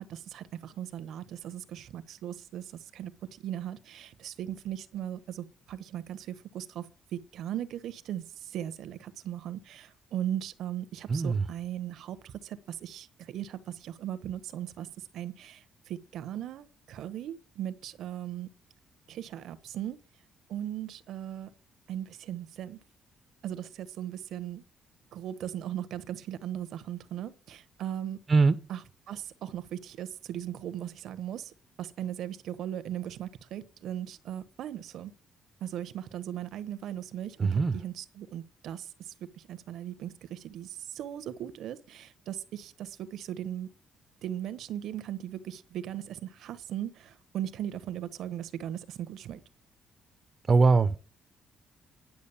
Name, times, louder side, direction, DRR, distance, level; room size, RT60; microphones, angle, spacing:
voice 1, 0.0-6.9 7.1-14.9 15.1-18.5 19.1-20.0 20.5-21.5 21.9-22.8 23.4-24.6 25.1-28.2 28.7-28.8 29.1-35.1 35.6-43.7 44.2-49.4, right 11 dB, 75° right, 1.1 m, -38 dB
voice 2, 11.1-11.5 28.3-28.5 37.4-37.7 50.5-51.0, right 4 dB, 35° right, 0.7 m, -22 dB
10.5 x 6.4 x 7.0 m
cardioid pair, 100°, 0 cm